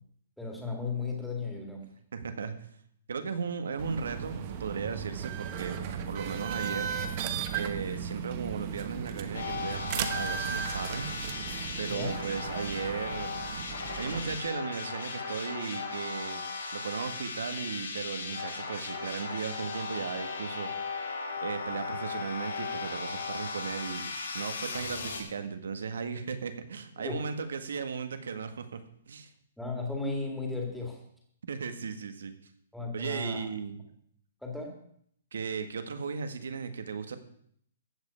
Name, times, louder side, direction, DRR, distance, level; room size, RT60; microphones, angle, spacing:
voice 1, 0.4-1.9 11.9-12.2 27.0-27.2 29.6-31.0 32.7-33.5 34.4-34.8, left 3 dB, ahead, -1 dB, 2.1 m, -35 dB
voice 2, 2.1-2.7 3.1-11.3 11.8-13.7 14.0-16.4 16.7-21.0 21.4-28.8 29.1-29.3 31.4-32.5 32.9-33.9 35.3-37.2, right 5 dB, 85° right, 8 dB, 1.7 m, -36 dB
sound 1, 3.8-14.4, right 8 dB, 25° right, 1.0 m, -36 dB
sound 2, 9.3-25.2, left 4 dB, 80° left, 5.8 m, -37 dB
14.5 x 5.6 x 8.4 m, 0.66 s
hypercardioid pair, 175°, 0 cm